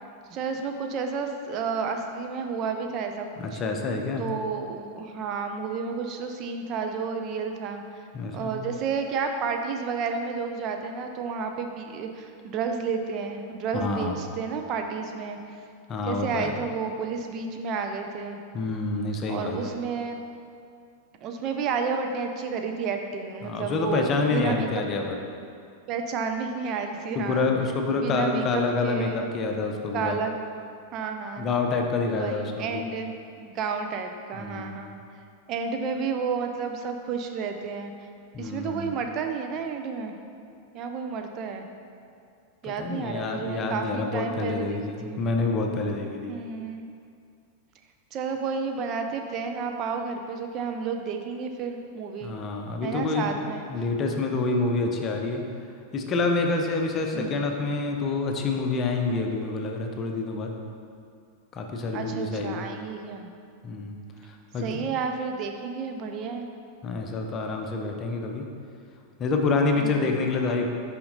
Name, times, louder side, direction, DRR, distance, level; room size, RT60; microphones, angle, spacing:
voice 1, 0.3-3.6 4.2-8.0 8.3-15.4 16.1-18.4 19.3-20.2 21.2-24.7 25.9-27.5 27.9-29.3 29.9-30.3 30.9-31.5 32.1-33.1 33.4-35.0 35.5-37.9 38.4-40.1 40.7-41.7 42.6-45.2 46.3-46.9 48.1-52.3 52.8-53.7 57.1-57.5 61.9-63.3 64.6-66.5 69.8-70.2, right 5 dB, 35° right, 4 dB, 0.4 m, -31 dB
voice 2, 3.4-4.2 8.1-8.6 13.7-14.2 15.9-16.5 18.5-19.7 23.4-25.2 27.2-30.2 31.4-32.9 34.4-34.8 38.3-38.9 42.6-46.3 52.2-53.3 53.7-55.4 55.9-60.5 61.5-62.7 63.6-64.0 64.5-64.9 66.8-68.4 69.2-70.7, left 3 dB, 30° left, 2 dB, 0.7 m, -27 dB
5.7 x 5.1 x 3.9 m, 2.4 s
figure-of-eight pair, 90°, 0 cm